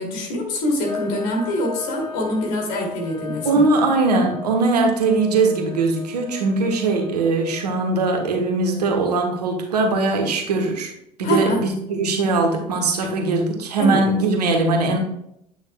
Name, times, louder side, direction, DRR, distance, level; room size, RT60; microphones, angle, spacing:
voice 1, 0.0-3.6 11.2-11.6 13.8-14.1, left 1 dB, 65° left, 0 dB, 2.6 m, -24 dB
sound 1, 0.8-8.5, left 5 dB, 90° left, 2.0 m, -38 dB
voice 2, 3.4-10.9 11.2-15.0, right 3 dB, 85° right, 3 dB, 1.2 m, -20 dB
8.8 x 6.2 x 2.3 m, 0.76 s
hypercardioid pair, 65°, 20 cm